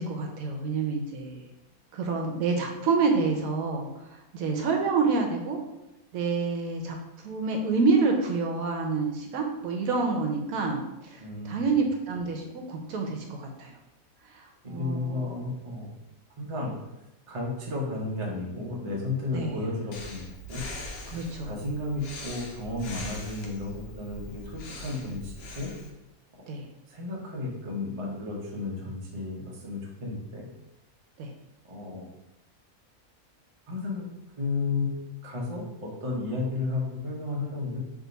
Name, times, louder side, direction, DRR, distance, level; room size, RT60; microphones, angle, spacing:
voice 1, 0.0-1.5 1.9-5.6 6.1-7.0 7.2-13.7 14.3-15.3 19.3-19.6 21.1-21.5 26.5-26.6 31.2-31.3, right 4 dB, 75° right, 2 dB, 1.1 m, -28 dB
voice 2, 11.2-11.8 14.6-15.9 16.4-16.7 17.3-20.6 21.4-25.7 26.9-30.5 31.7-32.1 33.7-34.0 34.4-37.8, left 3 dB, 30° right, -2 dB, 0.6 m, -33 dB
Breathing, 19.9-25.9, left 1 dB, 85° left, 1.1 m, -41 dB
3.6 x 2.8 x 3.9 m, 0.94 s
omnidirectional pair, 1.5 m